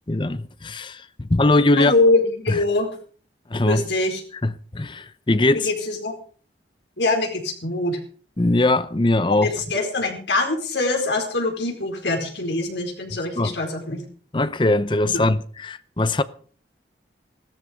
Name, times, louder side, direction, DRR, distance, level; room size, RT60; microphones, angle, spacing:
voice 1, 0.1-1.9 2.5-2.6 3.5-3.8 4.4-5.7 8.4-9.5 13.4-13.5 14.3-16.2, left 2 dB, 25° left, 0.7 m, -21 dB
voice 2, 1.8-3.0 3.7-4.2 5.5-6.2 7.0-8.0 9.3-14.0 15.0-15.3, left 2 dB, 80° left, 4.6 m, -23 dB
16.0 x 13.5 x 5.3 m
head